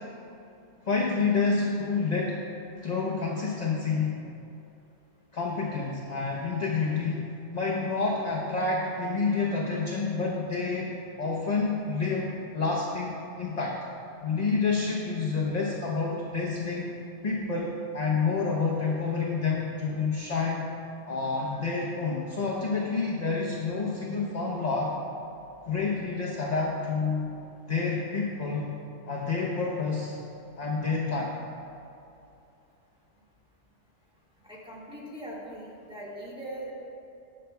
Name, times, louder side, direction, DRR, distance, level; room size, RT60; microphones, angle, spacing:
voice 1, 0.8-2.4 2.8-4.2 5.3-7.2 7.5-10.9 11.2-13.8 14.2-16.9 17.2-20.6 21.1-24.9 25.6-27.3 27.7-28.7 29.0-30.2 30.6-31.3, left 4 dB, 40° left, -2 dB, 0.8 m, -28 dB
voice 2, 34.4-36.7, right 1 dB, 5° right, -7 dB, 1.7 m, -41 dB
19.5 x 6.5 x 2.2 m, 2.7 s
omnidirectional pair, 1.3 m